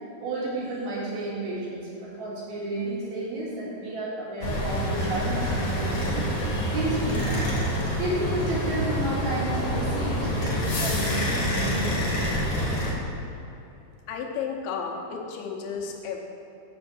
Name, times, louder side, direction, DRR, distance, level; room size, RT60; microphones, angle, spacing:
voice 1, 0.2-6.3 6.7-7.5 8.0-12.3, right 2 dB, 75° right, -6 dB, 3.9 m, -31 dB
sound 1, 4.4-12.9, equal, 50° left, 1.9 m, -27 dB
voice 2, 14.1-16.2, left 6 dB, 85° left, 1 dB, 2.9 m, -32 dB
7.4 x 7.0 x 6.1 m, 2.8 s
omnidirectional pair, 4.4 m